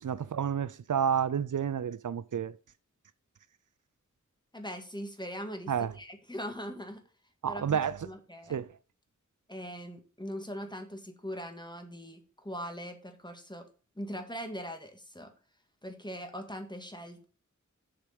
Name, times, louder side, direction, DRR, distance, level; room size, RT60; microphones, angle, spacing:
voice 1, 0.0-2.5 5.7-5.9 7.4-8.1 8.5-8.7, right 8 dB, 85° right, 0.5 m, -30 dB
voice 2, 4.5-7.0 7.5-8.5 9.5-13.7 14.0-15.3 15.8-17.2, equal, 15° left, 1.9 m, -41 dB
7.5 x 4.9 x 6.9 m
wide cardioid pair, 45°, 30 cm